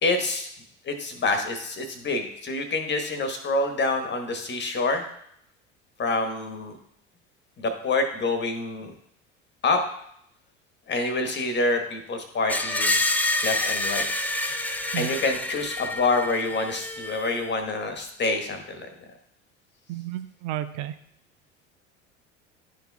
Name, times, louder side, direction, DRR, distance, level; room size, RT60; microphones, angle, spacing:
voice 1, 0.0-0.5 0.8-5.1 6.0-6.8 7.6-8.9 9.6-9.8 10.9-13.0 13.4-14.0 15.0-18.9, left 3 dB, 30° left, 5 dB, 1.2 m, -27 dB
Screech, 12.5-17.5, left 2 dB, 5° left, 0.4 m, -28 dB
voice 2, 19.9-21.0, right 12 dB, 55° right, 12 dB, 0.5 m, -32 dB
11.0 x 4.6 x 2.3 m, 0.72 s
figure-of-eight pair, 65°, 36 cm